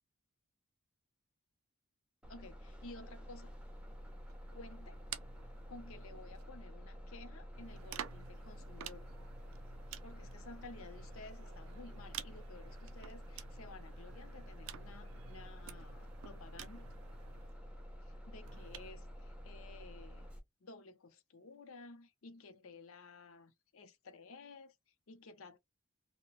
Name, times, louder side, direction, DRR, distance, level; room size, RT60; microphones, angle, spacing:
Bus, 2.2-20.4, equal, 5° right, 0.4 m, -50 dB
voice 1, 2.3-3.5 4.5-5.0 5.7-9.3 10.0-16.9 18.0-20.3 20.6-25.6, left 3 dB, 65° left, 0.5 m, -54 dB
sound 1, 3.4-6.6 7.5-17.6 18.4-18.9, right 10 dB, 65° right, 0.3 m, -52 dB
2.7 x 2.1 x 2.9 m
head